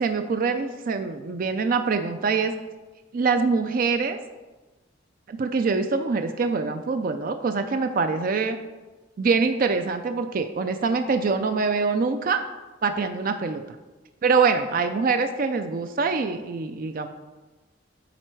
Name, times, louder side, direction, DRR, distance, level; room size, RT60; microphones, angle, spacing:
voice 1, 0.0-2.5 3.1-4.2 5.3-8.6 9.2-12.4 12.8-13.6 14.2-17.1, right 4 dB, 45° right, 7 dB, 0.4 m, -24 dB
9.0 x 4.1 x 4.5 m, 1.2 s
head